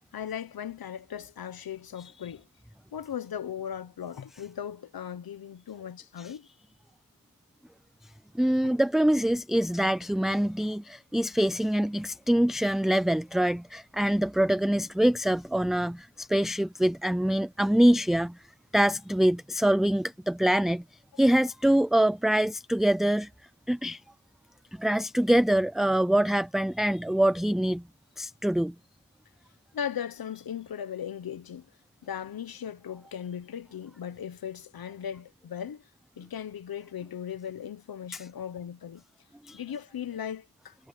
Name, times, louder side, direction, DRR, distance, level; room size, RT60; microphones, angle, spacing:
voice 1, 0.1-2.5 2.9-6.5 8.6-8.7 29.7-31.7 32.0-35.9 36.2-39.0 39.5-40.8, left 9 dB, 85° left, 1.1 m, -37 dB
voice 2, 8.4-18.4 18.7-20.8 21.2-23.3 23.7-24.0 24.7-27.8 28.2-28.7 38.1-38.2 39.4-39.6, right 1 dB, ahead, 0.4 m, -24 dB
wide cardioid pair, 175°, 35 cm